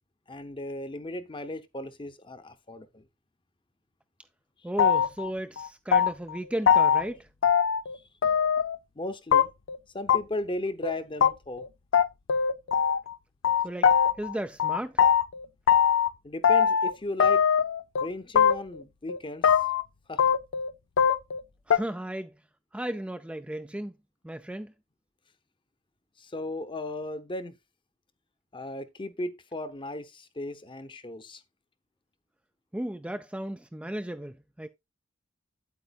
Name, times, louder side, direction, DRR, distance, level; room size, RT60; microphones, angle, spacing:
voice 1, 0.3-3.0 9.0-9.5 9.9-11.7 16.2-17.4 18.0-19.6 20.1-20.2 26.2-27.6 28.5-31.4, left 1 dB, 25° left, 0.8 m, -36 dB
voice 2, 4.6-7.3 13.6-13.9 14.2-15.0 21.7-22.4 22.7-23.9 24.2-24.7 32.7-34.7, right 1 dB, 5° right, 0.4 m, -35 dB
sound 1, 4.8-5.3 5.6-6.4 6.7-7.1 7.4-8.0 8.2-8.8 9.3-9.8 10.1-10.2 10.5-10.6 10.8-10.9 11.2-11.3 11.6-11.7 11.9-13.1 13.4-14.3 14.6-16.1 16.4-16.9 17.2-18.1 18.4-18.8 19.1-19.8 20.2-21.4 21.7-21.8, left 7 dB, 75° left, 0.5 m, -22 dB
8.9 x 8.4 x 2.4 m
head